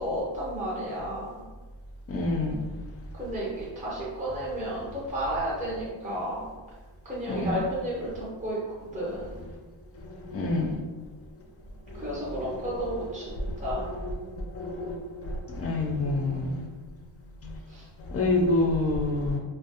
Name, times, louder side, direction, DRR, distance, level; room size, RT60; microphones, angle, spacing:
voice 1, 0.0-1.3 3.1-6.5 7.0-8.6 8.9-9.4 11.9-13.2 13.6-13.9 17.7-17.9, equal, 15° right, -7 dB, 0.6 m, -32 dB
voice 2, 2.1-2.6 7.3-7.6 9.9-10.8 11.9-12.0 13.3-13.6 13.9-16.7 17.4-17.6 18.0-19.4, left 2 dB, 35° left, 0 dB, 0.4 m, -28 dB
2.4 x 2.0 x 2.7 m, 1.3 s
wide cardioid pair, 120°, 46 cm